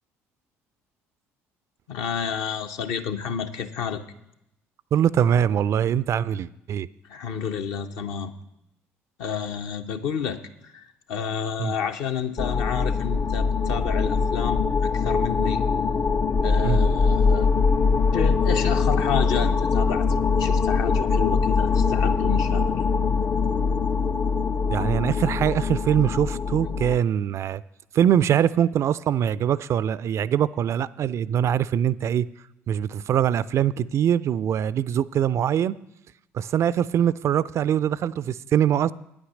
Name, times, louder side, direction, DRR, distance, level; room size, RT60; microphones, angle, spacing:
voice 1, 1.9-4.0 7.1-8.3 9.2-15.6 16.4-17.5 18.1-22.9, left 7 dB, 60° left, 6 dB, 0.8 m, -30 dB
voice 2, 4.9-6.9 11.6-11.7 16.6-16.8 24.7-27.6 27.9-32.3 32.7-35.7 36.3-38.9, right 9 dB, 40° right, 19 dB, 0.3 m, -23 dB
sound 1, 12.4-27.0, left 5 dB, 30° left, 0.4 m, -22 dB
9.6 x 8.6 x 6.3 m, 0.82 s
figure-of-eight pair, 50°, 7 cm